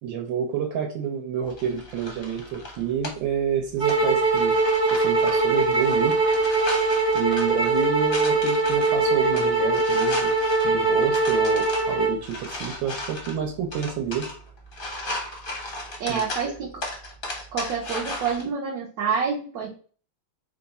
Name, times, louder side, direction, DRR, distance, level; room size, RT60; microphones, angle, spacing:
voice 1, 0.0-4.5 4.9-6.2 7.1-10.3 10.6-14.3 16.1-16.5, right 8 dB, 85° right, 1 dB, 1.4 m, -29 dB
sound 1, 1.5-18.4, left 1 dB, 50° left, 0.6 m, -37 dB
sound 2, 3.8-12.2, right 3 dB, 35° right, 0.9 m, -22 dB
voice 2, 16.0-16.7 17.5-19.7, right 6 dB, 65° right, -2 dB, 1.0 m, -27 dB
3.6 x 2.3 x 3.9 m, 0.41 s
omnidirectional pair, 2.1 m